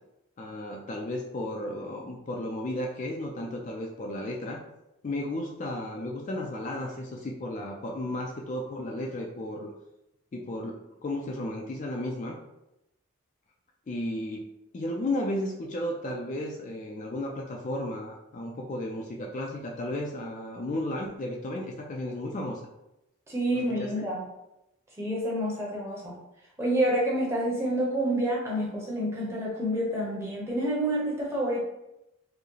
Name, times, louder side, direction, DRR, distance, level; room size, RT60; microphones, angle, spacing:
voice 1, 0.4-4.6 5.0-9.7 10.3-12.4 13.9-14.5 14.7-22.6 23.5-24.1, left 1 dB, 35° left, 0 dB, 0.3 m, -34 dB
voice 2, 23.3-24.2 25.0-26.1 26.6-31.6, right 1 dB, 10° right, -4 dB, 0.8 m, -28 dB
4.5 x 2.0 x 3.1 m, 0.89 s
head